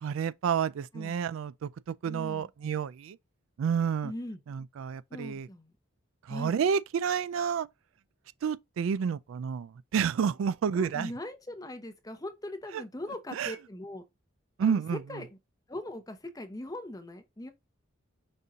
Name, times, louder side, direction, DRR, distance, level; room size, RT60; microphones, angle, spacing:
voice 1, 0.0-3.2 3.6-4.1 4.5-5.5 6.3-7.7 8.4-11.1 12.7-12.8 13.3-13.5 14.6-15.0, right 7 dB, 80° right, 0.3 m, -30 dB
voice 2, 2.0-2.5 4.0-4.4 5.1-5.7 6.3-6.6 10.7-14.0 14.6-15.3 15.7-17.5, left 1 dB, 20° left, 0.7 m, -40 dB
5.3 x 2.7 x 3.5 m
head